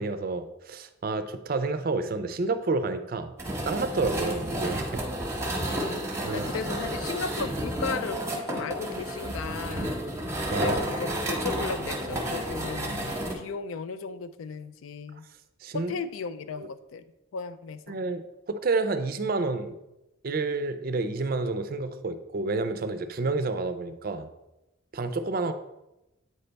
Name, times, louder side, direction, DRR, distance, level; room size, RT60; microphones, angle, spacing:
voice 1, 0.0-3.3 3.6-5.0 6.2-6.5 10.5-11.0 15.6-15.9 16.6-16.7 17.9-19.7 20.2-24.3 24.9-25.5, right 3 dB, 45° right, 10 dB, 0.4 m, -29 dB
sound 1, 3.4-13.3, right 1 dB, 15° right, 0.8 m, -31 dB
voice 2, 5.6-9.9 10.5-15.3 15.7-17.0 17.3-18.0, left 5 dB, 80° left, 12 dB, 0.4 m, -36 dB
8.3 x 3.3 x 4.0 m, 0.93 s
head